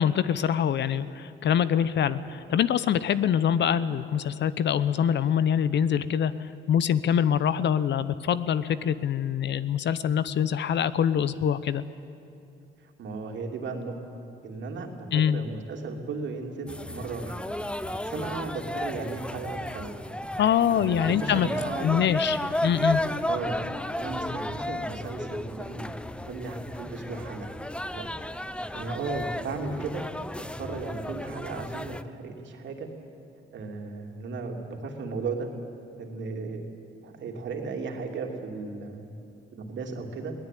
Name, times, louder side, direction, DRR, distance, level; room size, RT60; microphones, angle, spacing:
voice 1, 0.0-11.8 15.1-15.4 20.4-21.5 21.8-23.0, left 8 dB, 65° left, 15 dB, 0.9 m, -24 dB
voice 2, 12.8-14.0 14.4-17.4 17.9-19.9 20.7-22.0 23.3-23.6 24.0-25.9 26.3-27.5 27.9-28.1 28.7-30.0 30.5-32.9 33.5-35.5 36.0-36.7 37.0-39.1 39.5-40.3, right 4 dB, 70° right, 3 dB, 2.9 m, -35 dB
sound 1, 16.7-32.0, left 1 dB, 5° left, 0.7 m, -33 dB
22.0 x 18.5 x 9.2 m, 2.7 s
cardioid pair, 90°, 20 cm